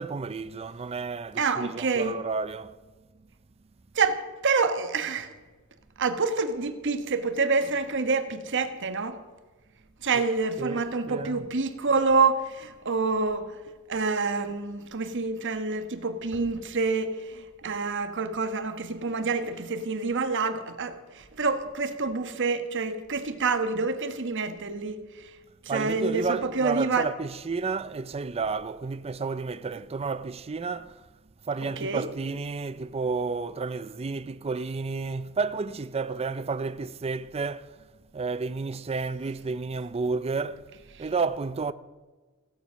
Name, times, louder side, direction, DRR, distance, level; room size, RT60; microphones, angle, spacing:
voice 1, 0.0-2.7 10.1-10.2 10.6-11.5 25.7-31.0 31.5-37.7 38.1-40.7 41.0-41.7, right 4 dB, 30° right, 0.5 m, -31 dB
voice 2, 1.3-2.2 3.9-5.3 6.0-9.2 10.0-13.6 13.9-25.4 25.6-27.1 31.6-32.1 40.9-41.1, right 4 dB, 55° right, 1.3 m, -27 dB
16.0 x 11.5 x 6.3 m
head